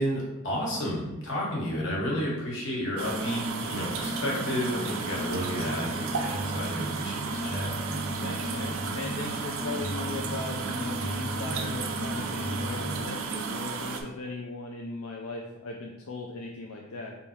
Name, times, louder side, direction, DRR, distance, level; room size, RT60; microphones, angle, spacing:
voice 1, 0.0-7.8, equal, 60° left, -4 dB, 1.3 m, -31 dB
sound 1, 3.0-14.0, right 5 dB, 75° right, 0.4 m, -34 dB
sound 2, 3.6-13.1, equal, 30° left, 1.3 m, -36 dB
voice 2, 8.2-17.2, left 3 dB, 80° left, -1 dB, 0.5 m, -38 dB
3.5 x 2.7 x 4.3 m, 0.99 s
head